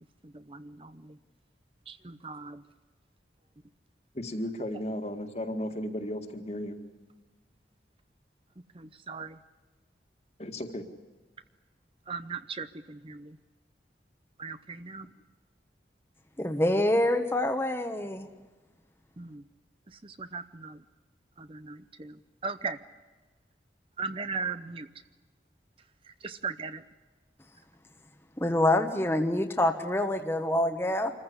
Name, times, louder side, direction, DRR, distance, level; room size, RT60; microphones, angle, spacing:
voice 1, 0.5-0.9 1.9-2.6 9.1-9.3 12.1-13.3 14.4-15.1 19.2-19.4 20.0-20.8 21.4-22.1 22.4-22.8 24.0-24.9 26.2-26.8, right 4 dB, 30° right, 12 dB, 0.7 m, -37 dB
voice 2, 4.1-6.8 10.4-10.8, left 1 dB, 35° left, 6 dB, 2.0 m, -34 dB
voice 3, 16.4-18.3 28.4-31.1, left 1 dB, 15° left, 5 dB, 1.1 m, -26 dB
26.5 x 15.0 x 9.8 m, 1.3 s
head